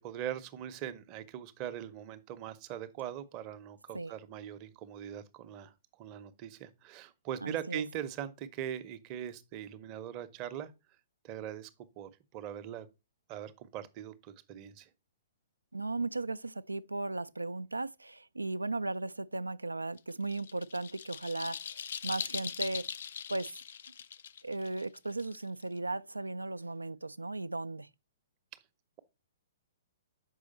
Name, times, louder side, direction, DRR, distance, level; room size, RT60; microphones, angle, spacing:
voice 1, 0.0-10.7 11.2-11.7 12.0-12.9 13.3-14.9, right 10 dB, 35° right, 0.7 m, -41 dB
voice 2, 7.4-7.8 15.7-22.9 23.3-23.6 24.4-27.9, right 2 dB, 85° right, 0.3 m, -36 dB
sound 1, 20.0-25.8, left 8 dB, 60° left, 0.3 m, -41 dB
6.2 x 4.9 x 4.1 m
figure-of-eight pair, 115°, 0 cm